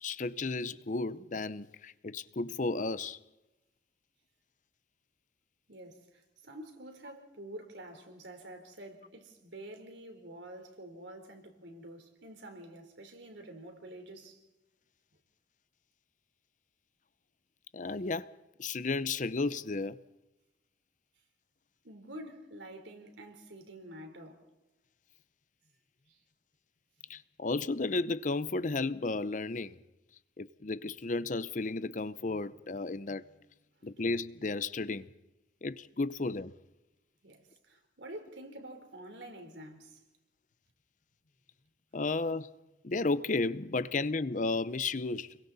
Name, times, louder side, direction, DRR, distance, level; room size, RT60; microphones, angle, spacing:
voice 1, 0.0-3.2 17.7-18.3 18.6-20.0 27.1-29.8 30.4-33.2 33.8-35.1 35.6-36.5 41.9-42.5 42.8-45.4, left 3 dB, 45° left, 0.6 m, -33 dB
voice 2, 5.7-14.4 21.8-24.5 26.1-26.2 37.2-40.0, right 1 dB, 75° right, 3.7 m, -48 dB
29.5 x 22.5 x 4.1 m
head